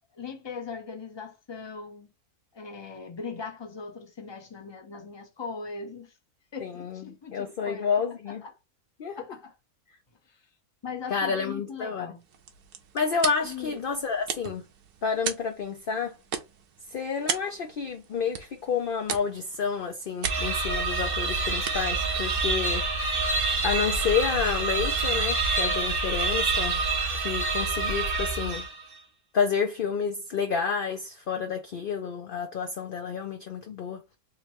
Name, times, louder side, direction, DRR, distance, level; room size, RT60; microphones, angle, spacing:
voice 1, 0.1-2.1 2.5-6.1 6.5-7.9 8.3-8.5 9.1-9.6 10.3-10.4 10.8-12.2 13.4-13.8, left 5 dB, 25° left, 0.7 m, -39 dB
voice 2, 6.6-7.0 7.3-8.4 9.0-9.2 11.1-12.1 12.9-14.6 15.0-16.2 16.9-22.8 23.6-26.8 27.1-28.7 29.3-34.0, left 6 dB, 60° left, 0.6 m, -29 dB
sound 1, 12.2-23.4, right 7 dB, 80° right, 1.3 m, -39 dB
sound 2, 20.2-28.9, right 3 dB, 45° right, 1.0 m, -27 dB
3.7 x 3.0 x 3.1 m
omnidirectional pair, 1.6 m